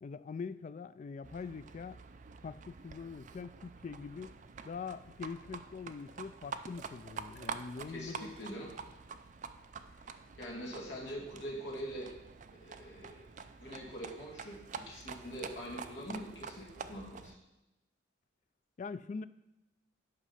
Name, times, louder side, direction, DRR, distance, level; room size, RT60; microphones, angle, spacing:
voice 1, 0.0-2.0 2.4-4.3 4.6-8.3 18.8-19.2, left 5 dB, 40° left, 14 dB, 0.3 m, -43 dB
Livestock farm animals working animals, 1.2-17.4, right 5 dB, 40° right, 0.4 m, -47 dB
voice 2, 7.9-8.7 9.9-12.1 12.6-13.2 13.6-17.4, equal, 65° left, -4 dB, 2.3 m, -44 dB
10.0 x 5.3 x 5.6 m, 0.96 s
head